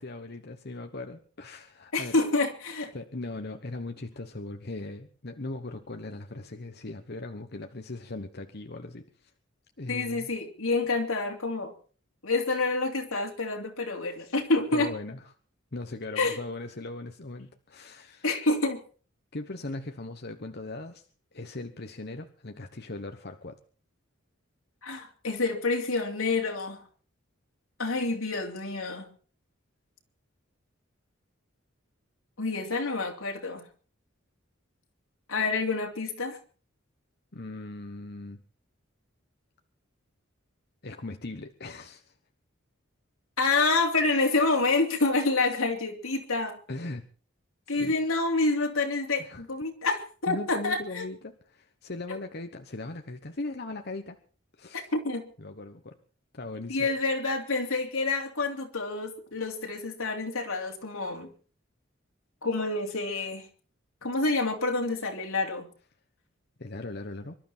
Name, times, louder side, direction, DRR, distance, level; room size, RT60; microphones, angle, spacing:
voice 1, 0.0-2.2 2.9-9.3 9.8-10.3 14.7-15.3 15.7-18.3 19.3-21.0 21.3-23.6 37.3-38.4 40.8-42.1 46.7-47.1 47.8-48.0 49.2-49.4 50.3-54.2 54.6-54.9 55.4-56.0 56.3-56.9 66.6-67.3, left 2 dB, 50° left, 5 dB, 1.1 m, -39 dB
voice 2, 1.9-2.9 9.9-11.7 12.2-14.9 16.2-16.4 18.2-18.8 24.8-26.8 27.8-29.1 32.4-33.6 35.3-36.4 43.4-46.6 47.7-51.0 54.7-55.3 56.7-61.3 62.4-63.4 64.0-65.7, left 3 dB, 85° left, 3 dB, 3.2 m, -28 dB
25.0 x 12.0 x 4.4 m, 0.41 s
head